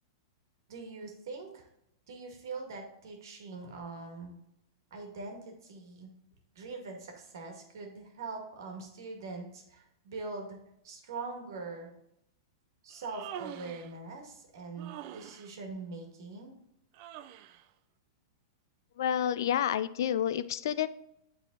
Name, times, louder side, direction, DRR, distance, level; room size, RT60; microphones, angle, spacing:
voice 1, 0.7-1.7 2.1-4.3 4.9-6.1 6.5-10.6 10.8-11.9 12.8-16.5, right 3 dB, 75° right, 3 dB, 1.8 m, -42 dB
Human voice, 12.9-13.9 14.8-15.5 16.9-17.6, right 10 dB, 50° right, 0.4 m, -45 dB
voice 2, 19.0-20.9, left 10 dB, 70° left, 15 dB, 0.4 m, -29 dB
8.2 x 4.0 x 3.9 m, 0.78 s
hypercardioid pair, 130°, 2 cm